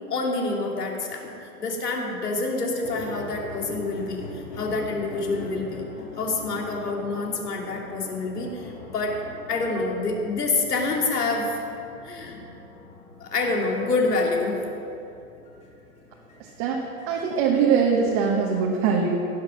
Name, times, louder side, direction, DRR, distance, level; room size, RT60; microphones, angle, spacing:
voice 1, 0.1-5.9 6.2-9.2 9.5-11.6 12.0-12.4 13.2-14.6, left 3 dB, 90° left, 0 dB, 2.6 m, -27 dB
sound 1, 2.8-18.6, left 2 dB, 15° left, 1.9 m, -43 dB
voice 2, 16.4-19.2, right 6 dB, 35° right, -1 dB, 1.3 m, -22 dB
17.0 x 6.4 x 6.0 m, 2.7 s
hypercardioid pair, 130°, 45 cm